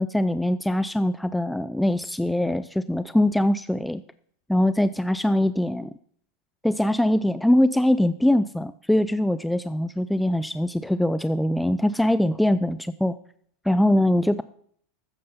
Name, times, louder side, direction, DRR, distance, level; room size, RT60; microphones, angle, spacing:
voice 1, 0.0-4.0 4.5-5.9 6.6-13.2 13.7-14.4, left 1 dB, 5° left, 14 dB, 0.5 m, -22 dB
13.0 x 9.2 x 5.6 m, 0.62 s
hypercardioid pair, 100°, 0 cm